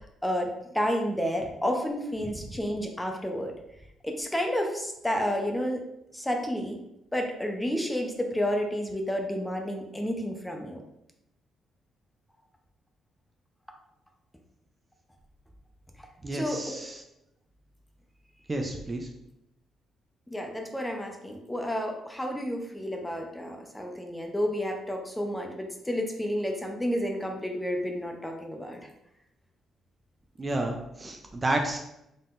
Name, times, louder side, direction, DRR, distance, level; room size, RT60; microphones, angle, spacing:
voice 1, 0.2-3.5 4.0-5.8 6.1-6.8 7.1-10.8 16.3-16.8 20.3-28.9, equal, 10° left, 3 dB, 0.7 m, -30 dB
voice 2, 16.2-17.0 18.5-19.1 30.4-31.8, right 2 dB, 25° right, 3 dB, 0.5 m, -30 dB
3.9 x 3.8 x 2.5 m, 0.83 s
cardioid pair, 90°, 0 cm